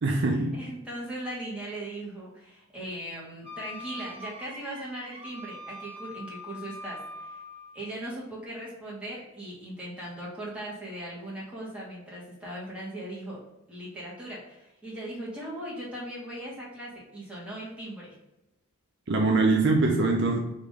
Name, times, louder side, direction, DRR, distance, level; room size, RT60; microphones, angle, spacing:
voice 1, 0.0-0.6 19.1-20.4, right 3 dB, 50° right, 2 dB, 0.5 m, -23 dB
voice 2, 0.5-7.4 7.7-13.4 13.7-18.2, right 1 dB, 5° right, -7 dB, 1.5 m, -39 dB
Wind instrument woodwind instrument, 3.4-7.8, left 1 dB, 25° right, 0.8 m, -43 dB
3.7 x 2.9 x 4.9 m, 0.96 s
head